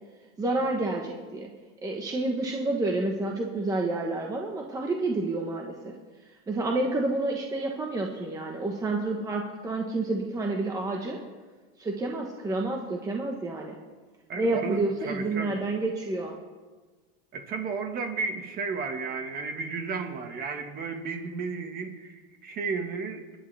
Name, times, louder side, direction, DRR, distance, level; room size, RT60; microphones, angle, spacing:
voice 1, 0.4-1.5 1.8-5.9 6.5-11.2 11.8-13.7 14.4-16.4, right 2 dB, 10° right, 1 dB, 1.2 m, -29 dB
voice 2, 14.3-15.6 17.3-23.2, right 4 dB, 30° right, 5 dB, 1.7 m, -33 dB
29.0 x 10.5 x 3.4 m, 1.3 s
supercardioid pair, 160°, 29 cm